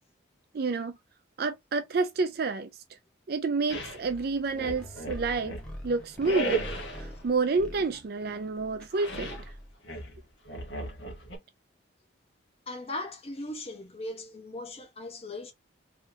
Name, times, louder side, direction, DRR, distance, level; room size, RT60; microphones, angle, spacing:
voice 1, 0.5-1.0 1.4-2.7 3.3-6.6 6.9-9.4, right 4 dB, 50° right, 0.4 m, -29 dB
sound 1, 3.7-4.0 4.5-5.7 6.2-7.1 8.9-9.5 9.8-11.4, right 2 dB, 65° left, 1.4 m, -35 dB
sound 2, 4.0-9.7, equal, 5° left, 1.1 m, -45 dB
voice 2, 12.7-15.5, left 2 dB, 30° left, 1.0 m, -38 dB
3.7 x 3.2 x 2.7 m
head